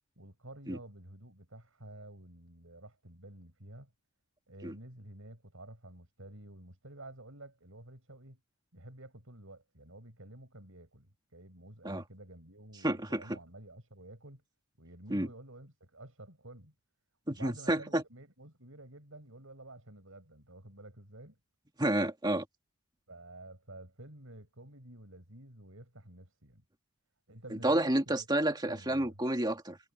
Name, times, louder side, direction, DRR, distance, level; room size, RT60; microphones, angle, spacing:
voice 1, 0.2-3.9 4.5-8.4 8.7-14.4 14.8-16.7 17.3-21.4 23.1-26.6 27.3-29.2, right 1 dB, 65° right, 7.7 m, -51 dB
voice 2, 12.8-13.4 15.1-15.3 17.3-18.0 21.8-22.5 27.6-29.8, right 1 dB, 20° right, 2.1 m, -30 dB
head